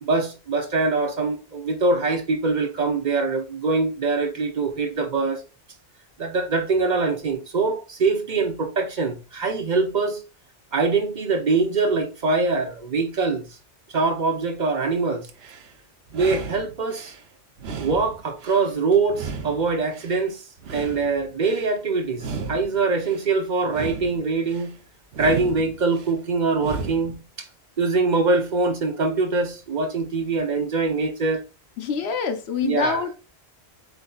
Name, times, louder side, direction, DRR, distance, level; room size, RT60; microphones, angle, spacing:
voice 1, 0.0-5.4 6.2-10.2 10.7-13.4 13.9-15.3 16.1-17.1 17.8-20.4 20.7-24.7 25.2-27.5 27.8-31.4 32.6-33.0, right 3 dB, 50° right, 0.7 m, -23 dB
sound 1, 15.2-15.7 16.1-17.2 17.6-18.7 19.1-20.2 20.6-21.7 22.1-23.2 23.6-24.7 25.1-26.1 26.6-27.2, right 5 dB, 75° right, 1.0 m, -35 dB
voice 2, 31.8-33.2, left 6 dB, 80° left, 1.0 m, -26 dB
7.9 x 2.7 x 2.3 m
omnidirectional pair, 1.1 m